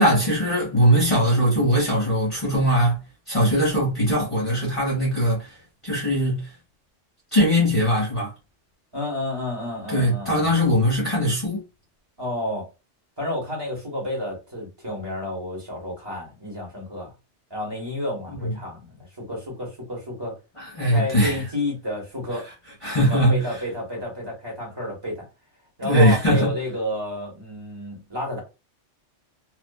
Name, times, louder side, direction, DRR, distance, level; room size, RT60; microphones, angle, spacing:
voice 1, 0.0-3.0 3.3-5.6 5.8-6.5 7.3-8.3 9.9-11.6 18.4-18.5 20.6-21.4 22.8-23.4 25.8-26.5, equal, 25° left, 1.2 m, -20 dB
voice 2, 8.9-10.5 12.2-12.7 13.2-17.1 17.5-20.3 20.9-22.4 23.0-25.3 25.8-28.4, left 1 dB, 20° right, 1.2 m, -31 dB
2.5 x 2.5 x 2.3 m
omnidirectional pair, 1.2 m